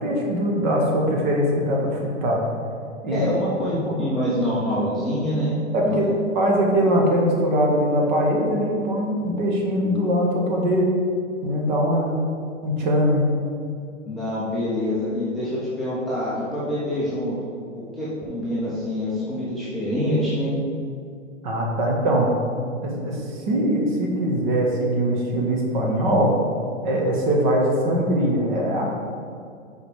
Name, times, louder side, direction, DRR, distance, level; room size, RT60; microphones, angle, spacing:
voice 1, 0.0-2.4 3.0-3.3 3.9-4.0 5.7-6.1 6.3-10.9 11.4-12.1 12.6-13.2 21.4-22.3 22.8-26.3 26.8-28.9, equal, 40° right, -1 dB, 1.3 m, -22 dB
voice 2, 3.1-5.6 5.8-6.1 14.1-17.3 17.7-20.5, left 1 dB, ahead, -10 dB, 0.6 m, -26 dB
5.0 x 4.9 x 5.0 m, 2.4 s
hypercardioid pair, 145°, 38 cm